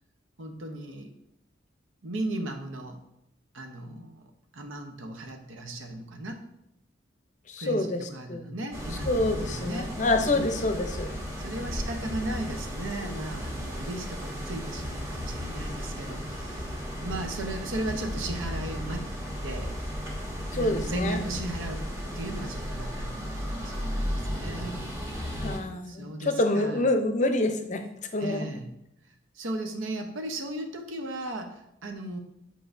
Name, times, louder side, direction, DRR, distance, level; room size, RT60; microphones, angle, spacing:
voice 1, 0.4-1.1 2.0-3.0 3.5-4.3 4.5-6.4 7.6-9.9 10.3-10.6 11.4-19.0 19.4-19.7 20.5-21.8 22.1-24.8 25.8-26.8 28.2-28.7 29.1-32.2, right 1 dB, 90° right, 4 dB, 0.9 m, -36 dB
voice 2, 7.5-8.4 9.1-11.1 20.5-21.2 25.3-27.8 28.1-28.5, left 2 dB, 40° left, 6 dB, 0.6 m, -27 dB
sound 1, 8.7-25.6, equal, 15° right, 1.0 m, -34 dB
8.1 x 4.8 x 2.6 m, 0.80 s
head